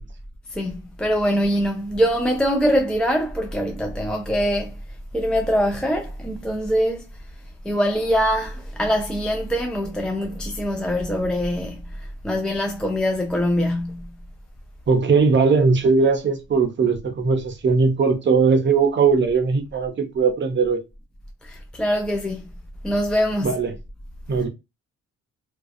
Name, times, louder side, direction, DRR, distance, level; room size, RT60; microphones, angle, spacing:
voice 1, 0.5-4.8 5.1-7.1 7.6-14.2 21.4-22.4 22.8-23.6, equal, 5° left, 0.3 m, -23 dB
voice 2, 14.9-20.8 23.4-23.7 24.3-24.5, right 4 dB, 40° right, 0.7 m, -19 dB
2.4 x 2.3 x 2.5 m
cardioid pair, 90°, 30 cm